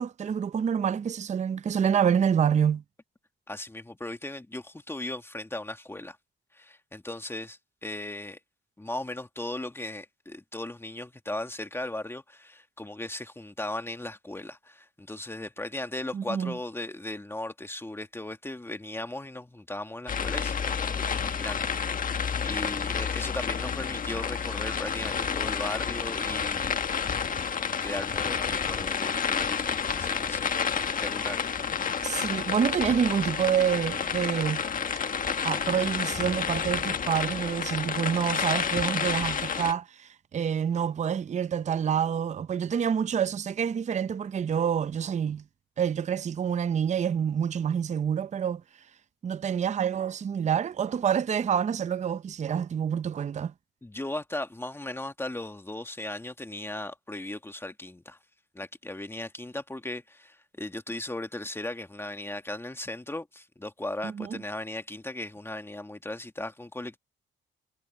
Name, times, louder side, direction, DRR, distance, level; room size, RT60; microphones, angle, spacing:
voice 1, 0.0-2.8 16.1-16.5 32.0-34.6 35.4-45.4 45.8-48.6 49.2-53.5 64.0-64.4, right 8 dB, 35° right, 0.6 m, -27 dB
voice 2, 3.5-6.2 6.5-8.4 8.8-26.8 27.8-30.5 30.9-31.6 53.8-58.2 58.5-67.0, left 1 dB, 10° left, 1.9 m, -37 dB
sound 1, 20.1-39.7, left 6 dB, 45° left, 1.6 m, -30 dB
cardioid pair, 90°, 20 cm